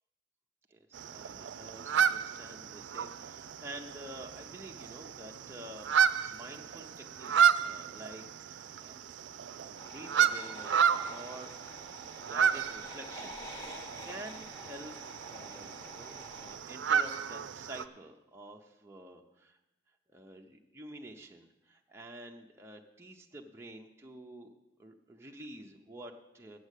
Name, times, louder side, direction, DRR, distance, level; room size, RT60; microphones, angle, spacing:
voice 1, 0.7-5.9 6.3-9.0 9.6-11.5 12.1-13.7 14.0-15.0 15.3-19.6 20.1-24.5 24.8-26.6, right 1 dB, 15° right, 1 dB, 0.7 m, -49 dB
sound 1, 0.9-17.8, right 8 dB, 85° right, 0.4 m, -32 dB
sound 2, 9.8-16.6, equal, 20° left, 1.3 m, -48 dB
8.3 x 7.7 x 8.1 m, 0.94 s
head